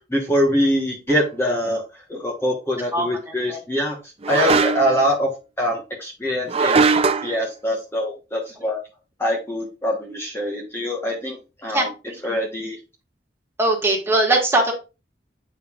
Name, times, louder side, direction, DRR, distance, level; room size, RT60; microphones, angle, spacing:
voice 1, 0.1-1.8 2.1-4.0 4.3-5.3 5.6-6.9 7.2-8.8 9.2-11.4 11.6-11.9 12.2-12.8, equal, 15° left, -2 dB, 1.2 m, -23 dB
sound 1, 1.1-1.3 4.2-5.0 6.5-7.3, right 4 dB, 35° right, 0.5 m, -19 dB
voice 2, 13.6-14.7, right 2 dB, 15° right, 0 dB, 1.8 m, -19 dB
8.8 x 5.3 x 2.5 m, 0.29 s
head